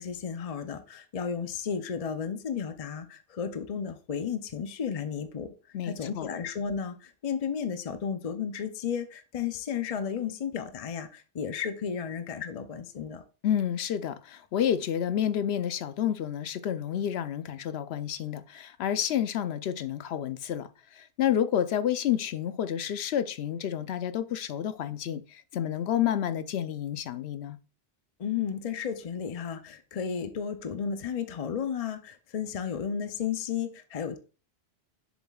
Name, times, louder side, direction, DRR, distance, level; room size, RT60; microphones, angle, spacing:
voice 1, 0.0-5.5 5.8-13.2 28.2-34.2, left 7 dB, 45° left, 0.5 m, -33 dB
voice 2, 5.7-6.3 13.4-27.6, left 10 dB, 75° left, 0.8 m, -30 dB
7.2 x 7.2 x 2.3 m
omnidirectional pair, 1.1 m